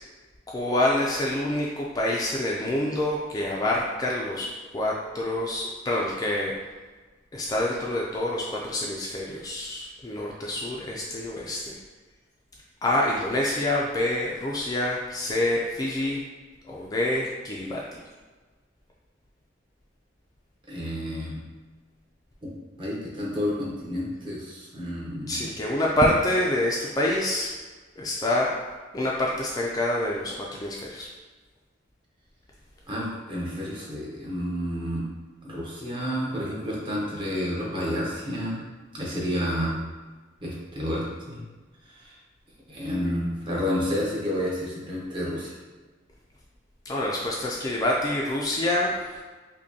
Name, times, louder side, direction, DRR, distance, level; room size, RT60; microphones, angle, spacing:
voice 1, 0.5-4.5 4.7-6.6 7.3-11.8 12.8-16.2 16.7-17.8 25.3-27.5 28.0-28.6 28.9-31.1 46.9-49.2, left 1 dB, 20° left, -3 dB, 0.3 m, -26 dB
voice 2, 20.7-21.4 22.4-25.4 32.9-35.0 35.4-38.6 38.9-39.8 40.4-41.4 41.9-42.2 42.7-45.5, equal, 25° right, -5 dB, 0.8 m, -30 dB
5.1 x 2.2 x 2.7 m, 1.3 s
head